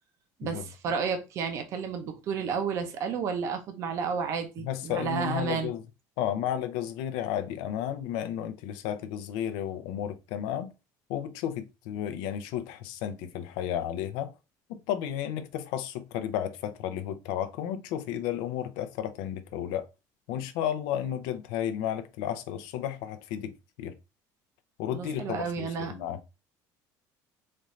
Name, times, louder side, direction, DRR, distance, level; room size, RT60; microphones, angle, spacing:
voice 1, 0.4-5.7 24.9-25.9, right 6 dB, 40° right, 0.6 m, -31 dB
voice 2, 4.6-5.8 6.2-10.7 11.1-14.3 14.7-19.9 20.3-23.5 23.8-23.9 24.8-26.2, left 10 dB, 80° left, 0.6 m, -33 dB
4.3 x 2.5 x 3.1 m
cardioid pair, 170°, 8 cm